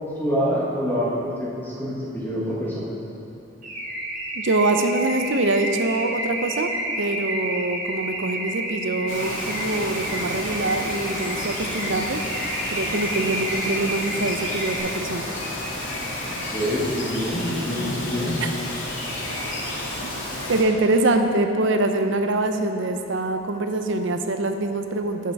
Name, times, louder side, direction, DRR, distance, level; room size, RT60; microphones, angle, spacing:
voice 1, 0.2-2.9 16.3-18.4, equal, 10° left, -7 dB, 1.4 m, -26 dB
Car / Alarm, 3.6-14.8, right 1 dB, 40° right, 1.7 m, -30 dB
voice 2, 4.3-6.7 7.0-12.2 12.7-15.3 20.0-20.1 20.5-25.3, right 2 dB, 70° right, 6 dB, 0.7 m, -24 dB
Bird vocalization bird call bird song, 9.1-20.6, left 1 dB, 80° left, 2.1 m, -31 dB
13.5 x 5.7 x 4.7 m, 2.7 s
head